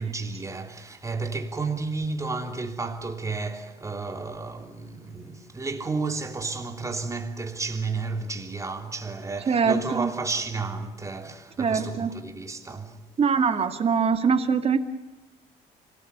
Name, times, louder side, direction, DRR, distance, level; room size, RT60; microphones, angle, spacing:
voice 1, 0.0-13.0, right 3 dB, 20° right, 3.1 m, -32 dB
voice 2, 9.5-10.1 11.6-12.1 13.2-14.8, right 6 dB, 35° right, 2.2 m, -23 dB
26.0 x 18.5 x 9.7 m
cardioid pair, 110°, 17 cm